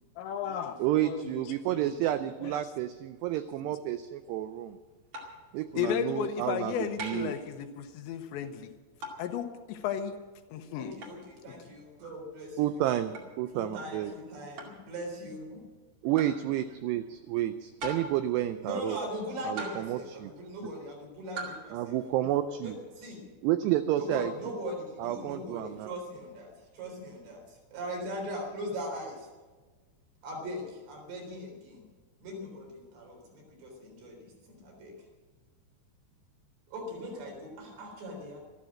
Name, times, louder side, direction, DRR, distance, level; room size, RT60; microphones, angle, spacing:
voice 1, 0.2-1.4 1.7-1.9 2.4-2.7 5.8-8.7 9.2-10.2 10.5-11.0, left 8 dB, 80° left, 7 dB, 3.0 m, -34 dB
voice 2, 0.8-4.8 5.5-7.3 12.6-14.1 16.0-19.0 19.5-20.3 21.7-22.8 23.4-24.3 25.0-25.9, right 13 dB, 85° right, 9 dB, 2.4 m, -30 dB
sound 1, 5.1-5.5 7.0-7.4 9.0-9.3 11.0-11.2 13.1-13.3 14.6-14.8 16.2-16.4 17.8-18.3 19.6-20.0 21.4-21.7, right 1 dB, 45° right, 3.2 m, -40 dB
voice 3, 10.8-12.6 13.5-15.6 18.6-22.0 22.6-23.2 24.0-29.3 30.2-31.9 32.2-34.9 36.7-38.4, equal, 65° right, 0 dB, 5.9 m, -40 dB
13.5 x 13.0 x 7.5 m, 1.4 s
omnidirectional pair, 5.4 m